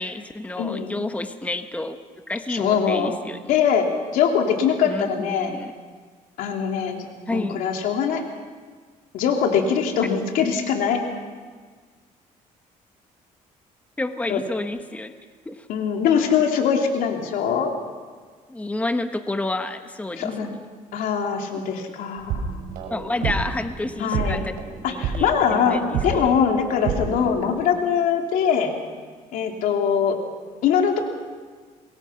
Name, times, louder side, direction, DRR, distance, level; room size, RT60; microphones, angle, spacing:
voice 1, 0.0-2.0 2.3-3.5 4.8-5.7 7.3-7.6 14.0-15.1 15.4-15.7 18.5-20.6 22.9-24.5 24.9-26.3, left 2 dB, 10° left, 8 dB, 1.2 m, -30 dB
voice 2, 0.6-1.0 2.5-3.1 3.4-3.8 4.1-5.6 6.4-7.0 7.3-8.2 9.1-11.0 14.3-14.4 15.7-17.7 20.2-20.6 20.9-22.5 24.0-24.4 24.8-28.7 29.3-30.2 30.6-31.0, left 7 dB, 85° left, 2 dB, 3.1 m, -22 dB
sound 1, 22.2-27.3, right 5 dB, 90° right, 5.7 m, -29 dB
27.0 x 22.0 x 5.9 m, 1.5 s
cardioid pair, 110°, 14 cm